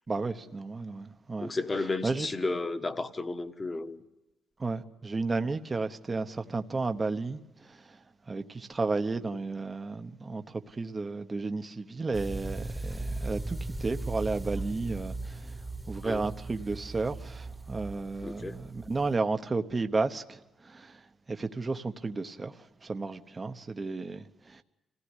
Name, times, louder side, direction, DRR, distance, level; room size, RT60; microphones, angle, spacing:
voice 1, 0.1-1.5 2.0-2.3 4.6-7.8 8.3-15.5 15.9-21.0 21.3-22.5 22.8-24.6, right 3 dB, 25° right, 1.0 m, -33 dB
voice 2, 1.4-4.0 16.0-16.2 18.2-18.5, left 3 dB, 25° left, 1.4 m, -33 dB
sound 1, 12.1-19.2, right 2 dB, 10° right, 1.4 m, -38 dB
26.5 x 17.0 x 9.8 m
cardioid pair, 90°, 0 cm